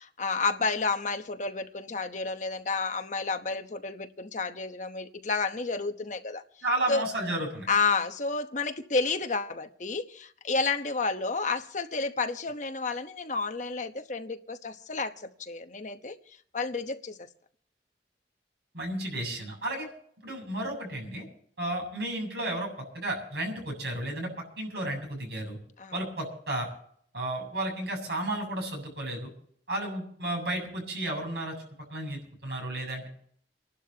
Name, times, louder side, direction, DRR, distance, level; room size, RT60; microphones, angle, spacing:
voice 1, 0.0-6.4 6.9-7.0 7.7-16.2 16.5-17.2 25.8-25.9, left 4 dB, 45° left, 1.0 m, -30 dB
voice 2, 6.6-7.7 18.7-19.9 20.2-21.2 21.6-24.3 24.6-25.6 25.9-26.7 27.1-29.3 29.7-31.5 31.9-33.1, right 1 dB, 70° right, 7.5 m, -33 dB
29.5 x 12.0 x 2.9 m
head